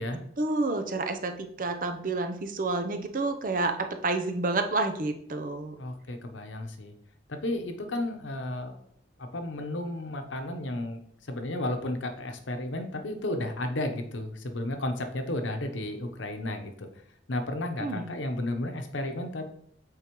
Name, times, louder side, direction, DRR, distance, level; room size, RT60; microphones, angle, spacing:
voice 1, 0.1-5.7 17.8-18.1, right 3 dB, 45° right, 6 dB, 0.6 m, -29 dB
voice 2, 5.8-6.9 7.3-8.7 9.3-11.0 11.3-16.9 17.3-19.5, left 1 dB, 90° left, 6 dB, 0.9 m, -33 dB
8.5 x 3.7 x 3.1 m, 0.67 s
head